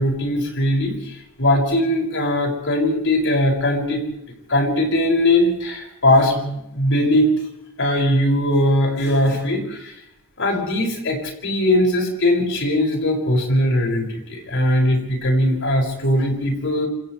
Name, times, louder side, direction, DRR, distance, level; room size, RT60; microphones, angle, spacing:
voice 1, 0.0-4.0 4.5-7.3 7.8-9.9 10.4-16.9, left 1 dB, 60° left, 1 dB, 7.0 m, -20 dB
28.0 x 27.5 x 3.5 m, 0.83 s
head